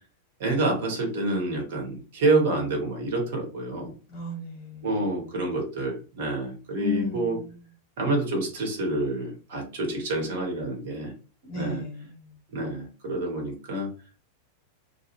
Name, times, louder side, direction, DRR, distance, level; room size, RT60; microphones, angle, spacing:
voice 1, 0.4-3.9 4.8-7.4 8.0-11.1 11.5-11.8 12.5-13.9, right 2 dB, 55° right, 1 dB, 1.0 m, -27 dB
voice 2, 4.1-4.9 6.7-7.6 11.5-12.3, left 2 dB, 30° left, -1 dB, 1.2 m, -34 dB
2.4 x 2.2 x 3.0 m, 0.35 s
figure-of-eight pair, 90°, 0 cm